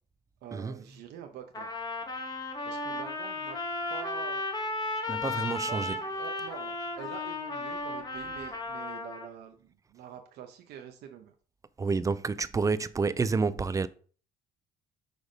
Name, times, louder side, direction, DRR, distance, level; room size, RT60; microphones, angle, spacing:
voice 1, 0.4-1.7 2.7-3.6 3.9-4.4 5.7-11.3, right 8 dB, 80° right, 0.9 m, -46 dB
Trumpet, 1.5-9.3, left 2 dB, 25° left, 1.4 m, -35 dB
voice 2, 5.1-5.9 11.8-13.9, right 4 dB, 20° right, 0.4 m, -29 dB
6.2 x 3.5 x 5.1 m
cardioid pair, 110°, 17 cm